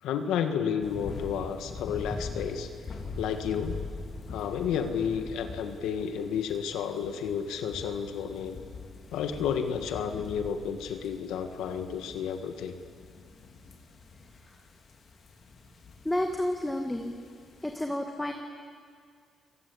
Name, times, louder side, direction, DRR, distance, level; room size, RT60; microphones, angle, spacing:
voice 1, 0.0-2.7 3.2-3.8 4.3-8.6 9.1-12.8, left 7 dB, 85° left, 7 dB, 1.7 m, -31 dB
sound 1, 0.8-17.7, left 3 dB, 50° left, 3.3 m, -43 dB
voice 2, 16.0-17.1 17.6-18.3, left 1 dB, 10° left, 4 dB, 1.9 m, -30 dB
30.0 x 19.5 x 8.6 m, 2.1 s
cardioid pair, 90°, 0 cm